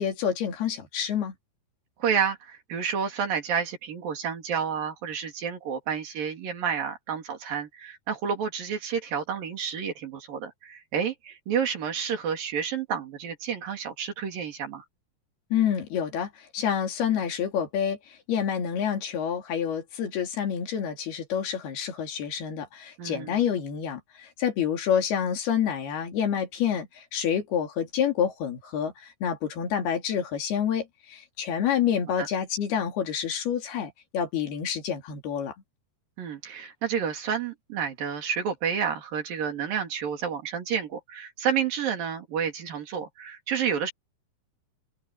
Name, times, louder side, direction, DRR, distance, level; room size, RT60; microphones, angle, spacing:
voice 1, 0.0-1.3 15.5-35.5, left 8 dB, 85° left, 4.9 m, -28 dB
voice 2, 2.0-14.8 23.0-23.4 32.2-32.3 36.2-43.9, right 7 dB, 65° right, 4.8 m, -30 dB
open air
omnidirectional pair, 4.4 m